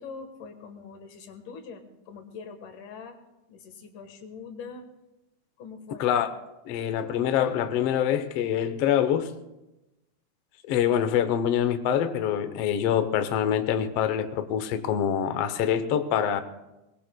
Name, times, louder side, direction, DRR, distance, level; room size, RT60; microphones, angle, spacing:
voice 1, 0.0-3.2 3.5-4.9 5.6-6.1, left 5 dB, 85° left, 6 dB, 3.0 m, -43 dB
voice 2, 6.6-9.3 10.7-16.4, left 9 dB, 70° left, 9 dB, 1.6 m, -25 dB
23.0 x 20.0 x 2.2 m, 0.97 s
omnidirectional pair, 3.5 m